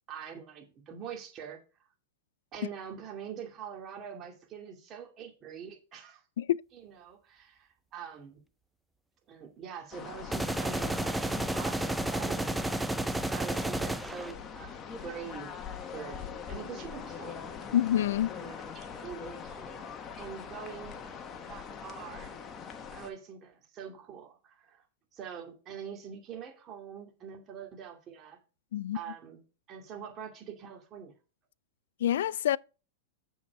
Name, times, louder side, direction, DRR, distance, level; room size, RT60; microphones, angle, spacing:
voice 1, 0.1-1.6 2.5-6.2 6.7-8.4 9.3-12.6 13.3-15.5 15.8-16.2 16.5-17.4 18.5-19.9 20.2-21.2 21.5-22.4 22.9-24.8 25.1-28.4 28.9-29.4 29.7-31.1, right 7 dB, 30° right, 2.3 m, -44 dB
sound 1, 9.9-23.1, left 6 dB, 25° left, 1.2 m, -42 dB
sound 2, 10.3-14.3, right 1 dB, 5° right, 0.4 m, -32 dB
voice 2, 17.7-18.3 28.7-29.0 32.0-32.6, left 11 dB, 75° left, 0.3 m, -26 dB
7.2 x 7.2 x 4.6 m
hypercardioid pair, 135°, 0 cm